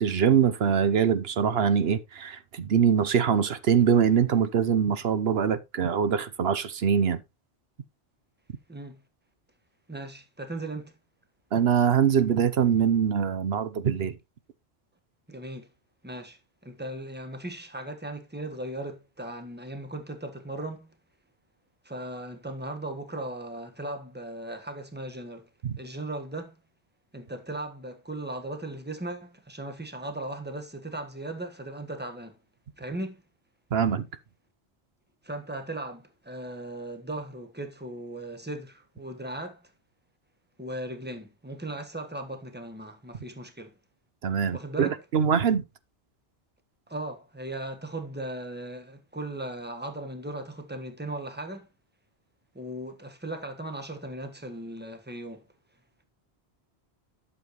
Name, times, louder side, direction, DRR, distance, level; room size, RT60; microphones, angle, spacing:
voice 1, 0.0-7.2 11.5-14.1 25.6-25.8 33.7-34.1 44.2-45.6, right 7 dB, 70° right, 1.0 m, -23 dB
voice 2, 8.7-9.0 9.9-10.9 15.3-15.7 16.0-20.9 21.8-25.5 25.8-26.6 27.1-32.3 32.8-33.2 35.2-39.7 40.6-43.7 44.5-45.0 46.9-51.7 52.5-55.4, right 1 dB, 10° right, 1.4 m, -37 dB
11.5 x 7.0 x 3.1 m
omnidirectional pair, 1.1 m